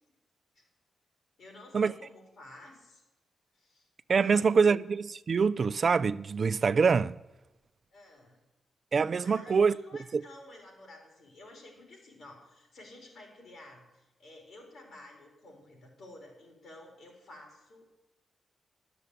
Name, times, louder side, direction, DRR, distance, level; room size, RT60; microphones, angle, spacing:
voice 1, 1.4-3.0 3.5-3.9 4.1-4.6 7.9-8.4 9.2-17.8, left 2 dB, 75° left, 4.0 m, -52 dB
voice 2, 4.1-7.2 8.9-9.8 10.1-10.2, right 5 dB, 50° right, 0.4 m, -25 dB
11.0 x 6.9 x 8.2 m
cardioid pair, 70°, 0 cm